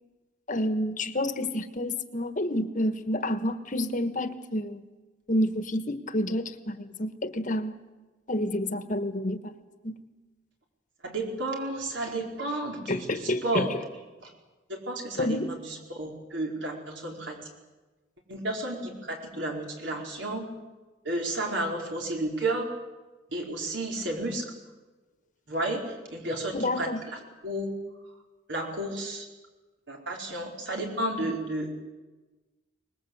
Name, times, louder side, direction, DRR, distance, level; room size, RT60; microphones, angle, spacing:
voice 1, 0.5-4.8 5.3-7.8 8.3-9.5 9.8-9.9 12.9-13.7 15.2-15.5 26.5-27.0, left 1 dB, 40° left, 11 dB, 1.4 m, -29 dB
voice 2, 11.0-13.7 14.2-14.3 14.7-17.4 18.3-20.5 21.0-22.7 23.3-24.5 25.5-27.8 28.5-29.3 29.9-31.7, right 1 dB, 70° right, 1 dB, 4.7 m, -32 dB
24.5 x 20.5 x 8.0 m, 1.2 s
head